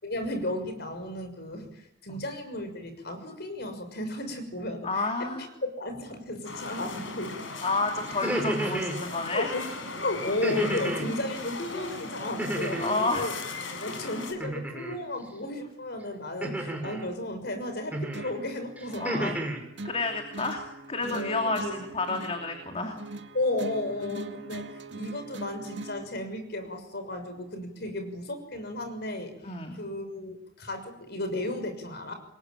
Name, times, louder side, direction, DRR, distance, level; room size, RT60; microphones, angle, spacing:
voice 1, 0.0-5.5 5.8-7.5 8.6-8.7 9.3-9.6 10.0-13.3 13.7-19.4 21.1-21.8 23.3-29.4 29.8-32.1, left 1 dB, 60° left, 7 dB, 6.3 m, -34 dB
voice 2, 4.8-5.5 7.6-9.5 12.7-13.3 16.4-16.6 18.9-19.3 19.8-23.0 29.4-29.8, left 3 dB, 30° left, 4 dB, 3.0 m, -30 dB
sound 1, 6.4-14.3, left 3 dB, 90° left, 5.0 m, -38 dB
sound 2, 8.1-9.0 10.4-11.1 12.4-13.1 14.4-15.0 16.4-17.1 17.9-18.3 18.8-19.6, right 1 dB, 10° right, 5.4 m, -31 dB
sound 3, 18.1-26.1, right 2 dB, 65° right, 2.2 m, -41 dB
27.5 x 22.0 x 9.2 m, 0.80 s
head